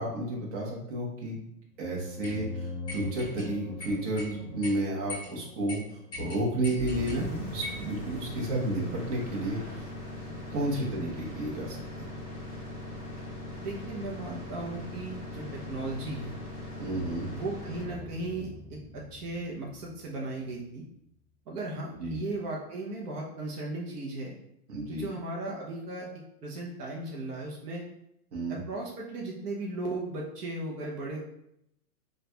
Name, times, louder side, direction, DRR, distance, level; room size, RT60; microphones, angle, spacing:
voice 1, 0.0-1.4 1.8-9.9 10.5-12.1 16.8-17.3 22.0-22.2 24.7-25.1 28.3-28.6, right 1 dB, 50° right, -2 dB, 1.1 m, -32 dB
sound 1, 1.8-6.4, left 4 dB, 50° left, 0.5 m, -41 dB
sound 2, 2.2-2.4 2.9-3.5 3.8-4.3 4.6-4.7 5.1-5.3 5.7-5.8 6.1-7.2 7.6-7.8, left 2 dB, 10° left, 1.2 m, -40 dB
sound 3, 6.7-20.7, left 1 dB, 10° right, 0.6 m, -41 dB
voice 2, 13.6-16.3 17.3-20.8 21.5-24.3 24.9-26.1 26.4-27.8 28.5-31.2, right 2 dB, 75° right, -3 dB, 0.9 m, -36 dB
4.0 x 2.5 x 2.3 m, 0.79 s
hypercardioid pair, 155°, 47 cm